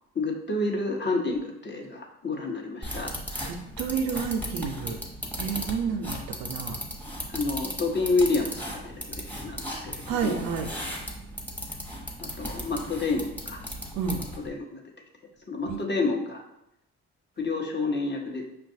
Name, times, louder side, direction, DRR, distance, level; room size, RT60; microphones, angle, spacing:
voice 1, 0.1-3.1 7.3-8.9 9.4-10.4 12.2-13.6 14.4-14.8 15.5-16.4 17.4-18.5, left 3 dB, 35° left, 1 dB, 0.9 m, -29 dB
sound 1, 2.8-14.5, equal, 5° left, 1.0 m, -36 dB
voice 2, 3.4-5.0 5.4-6.8 10.1-10.7 13.9-14.2 15.7-15.8, right 6 dB, 75° right, 5 dB, 0.6 m, -30 dB
5.4 x 2.2 x 2.7 m, 0.84 s
hypercardioid pair, 55°, 32 cm